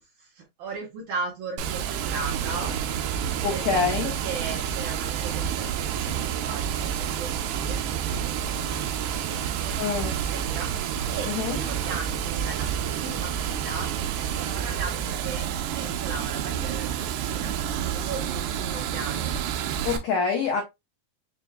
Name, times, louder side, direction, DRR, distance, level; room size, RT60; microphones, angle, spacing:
voice 1, 0.2-2.8 3.5-10.7 11.1-13.9 14.3-17.5 17.8-19.3, right 4 dB, 65° right, 2.1 m, -37 dB
Water, 1.6-20.0, right 9 dB, 85° right, 2.7 m, -29 dB
voice 2, 3.4-4.1 9.8-10.1 11.3-11.6 19.8-20.6, left 6 dB, 85° left, 1.6 m, -25 dB
7.1 x 2.7 x 2.2 m
omnidirectional pair, 4.4 m